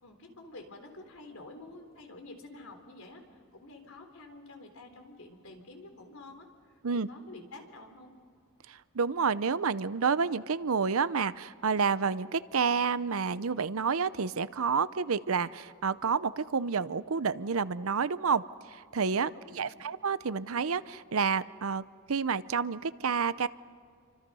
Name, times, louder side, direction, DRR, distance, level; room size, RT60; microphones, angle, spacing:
voice 1, 0.0-3.2 3.5-6.5 7.1-8.1 19.3-19.9, left 2 dB, 80° left, 5 dB, 3.7 m, -49 dB
voice 2, 8.7-18.4 18.7-23.5, right 5 dB, 85° right, 16 dB, 0.7 m, -29 dB
28.5 x 25.0 x 5.5 m, 2.2 s
head